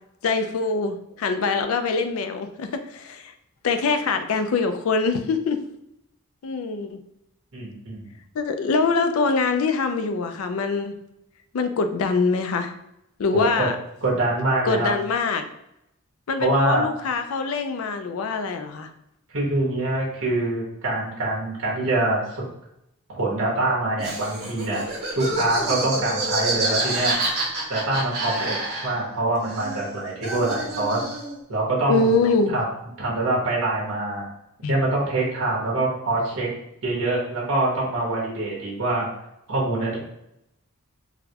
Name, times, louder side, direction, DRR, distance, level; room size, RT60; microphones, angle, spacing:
voice 1, 0.2-3.3 3.6-5.6 6.4-7.0 8.3-10.9 11.5-12.7 13.2-13.8 14.7-15.4 16.3-18.9 31.9-32.5 34.6-34.8, left 4 dB, 75° left, 8 dB, 0.4 m, -24 dB
voice 2, 7.5-8.0 13.3-13.7 14.0-14.9 16.4-16.8 19.3-22.4 23.1-24.8 25.2-27.1 27.7-28.6 28.8-31.0 31.5-32.2 32.5-32.6 33.0-34.2 34.7-36.5 36.8-39.0 39.5-40.0, right 2 dB, 80° right, -4 dB, 1.2 m, -24 dB
Laughter, 24.0-29.2 29.4-31.4, right 2 dB, 45° right, 1.2 m, -28 dB
4.0 x 2.1 x 2.8 m, 0.82 s
head